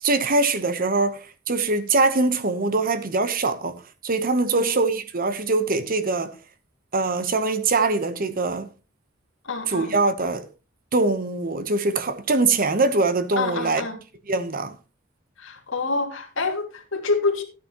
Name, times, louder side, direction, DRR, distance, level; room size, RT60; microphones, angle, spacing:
voice 1, 0.0-6.3 6.9-8.7 9.7-10.5 10.9-13.8 14.3-14.7, right 3 dB, 45° right, 1.0 m, -23 dB
voice 2, 4.5-4.9 9.4-9.9 13.4-14.0 15.4-17.4, left 3 dB, 75° left, 2.3 m, -27 dB
13.5 x 9.4 x 3.0 m
head